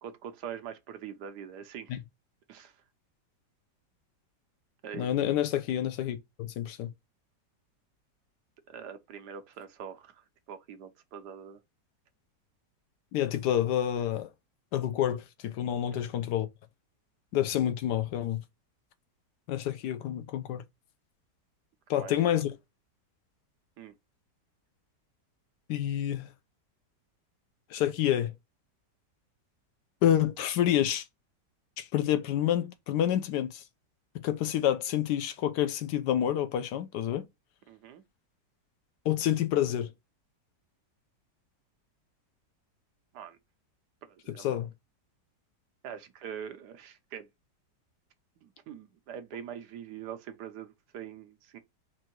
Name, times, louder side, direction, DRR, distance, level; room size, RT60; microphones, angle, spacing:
voice 1, 0.0-2.0 2.5-2.8 4.8-5.1 8.7-11.6 21.9-22.1 23.8-23.9 37.7-38.0 43.1-43.4 44.0-44.6 45.8-47.3 48.4-51.6, right 8 dB, 75° right, 1.2 m, -43 dB
voice 2, 4.9-6.9 13.1-14.3 14.7-16.5 17.3-18.4 19.5-20.6 21.9-22.5 25.7-26.3 27.7-28.3 30.0-31.0 31.8-33.6 34.2-37.2 39.1-39.9 44.4-44.7, left 11 dB, 75° left, 1.2 m, -28 dB
4.6 x 2.5 x 4.4 m
omnidirectional pair, 1.9 m